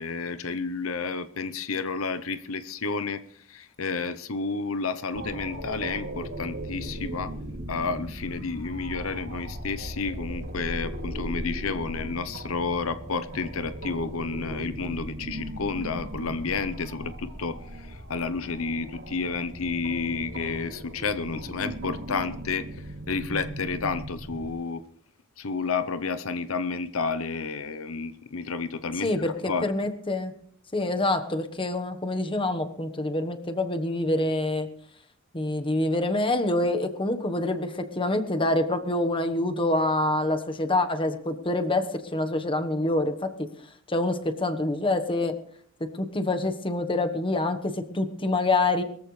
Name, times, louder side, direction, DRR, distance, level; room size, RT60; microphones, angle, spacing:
voice 1, 0.0-3.2 3.5-7.3 7.7-22.7 23.1-24.8 25.4-29.7, left 4 dB, 80° left, 12 dB, 0.8 m, -31 dB
sound 1, 5.1-24.5, right 1 dB, 65° right, 2.7 m, -38 dB
voice 2, 29.0-30.3 30.7-34.7 35.3-43.5 43.9-45.3 46.0-48.8, left 2 dB, 25° left, 7 dB, 1.2 m, -26 dB
22.0 x 14.0 x 3.3 m, 0.62 s
head